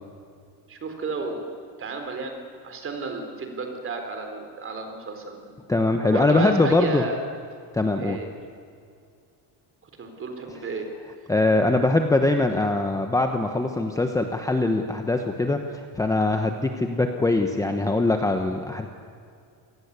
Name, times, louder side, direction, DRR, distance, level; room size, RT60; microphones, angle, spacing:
voice 1, 0.7-2.4 2.6-5.5 6.1-7.2 8.0-8.3 10.0-10.9, right 3 dB, 30° right, 5 dB, 4.0 m, -33 dB
voice 2, 5.7-7.0 7.7-8.2 11.3-18.9, left 2 dB, 10° left, 5 dB, 1.1 m, -22 dB
28.0 x 19.0 x 8.3 m, 2.3 s
cardioid pair, 165°, 41 cm